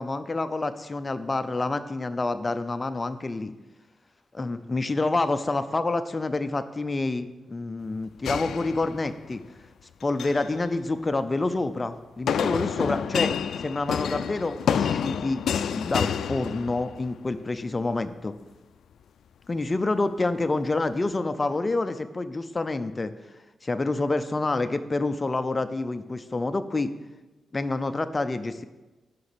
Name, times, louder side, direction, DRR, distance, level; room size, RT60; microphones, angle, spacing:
voice 1, 0.0-3.5 4.3-9.4 10.0-13.3 13.6-18.3 19.5-23.1 23.6-26.9 27.5-28.6, left 2 dB, 20° left, 10 dB, 0.5 m, -28 dB
sound 1, 8.2-9.3 10.0-10.5 12.3-17.1, left 8 dB, 80° left, 0.3 m, -28 dB
9.5 x 6.0 x 6.8 m, 1.2 s
wide cardioid pair, 140°, 0 cm